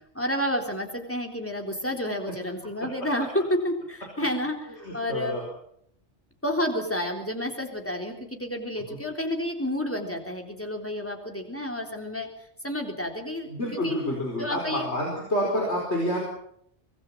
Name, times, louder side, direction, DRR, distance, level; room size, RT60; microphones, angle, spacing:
voice 1, 0.1-5.4 6.4-12.3 12.6-14.0 14.4-14.8, left 1 dB, 10° left, 3 dB, 3.8 m, -30 dB
voice 2, 4.8-5.4 8.9-9.0 13.5-16.2, equal, 65° left, 0 dB, 5.4 m, -28 dB
24.5 x 19.5 x 7.5 m, 0.69 s
omnidirectional pair, 1.2 m